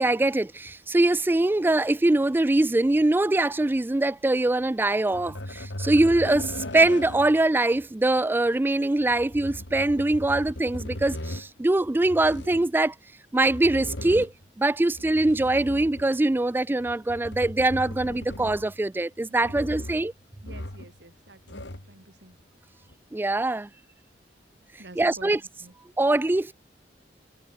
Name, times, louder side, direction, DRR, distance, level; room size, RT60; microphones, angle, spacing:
voice 1, 0.0-12.9 13.3-20.1 23.1-23.7 25.0-25.4 26.0-26.5, right 2 dB, 10° right, 0.3 m, -23 dB
sound 1, 5.1-7.4 9.1-11.5 12.0-12.7 13.4-14.5 14.9-16.2 16.8-18.8 19.4-20.1 20.4-21.0 21.3-21.9 22.9-23.0, left 1 dB, 85° left, 3.5 m, -37 dB
voice 2, 19.2-19.9 20.4-22.4 24.8-25.3 25.6-25.7, right 2 dB, 70° right, 3.4 m, -49 dB
head